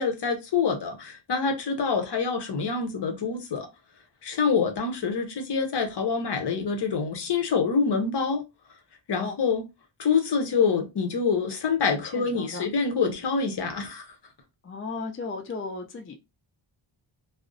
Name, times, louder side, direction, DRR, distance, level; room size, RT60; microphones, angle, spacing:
voice 1, 0.0-3.7 4.2-8.4 9.1-9.6 10.0-14.1, left 5 dB, 55° left, 0.8 m, -26 dB
voice 2, 12.1-12.6 14.6-16.1, left 3 dB, 30° left, 0.4 m, -35 dB
2.4 x 2.0 x 2.5 m
wide cardioid pair, 100°, 49 cm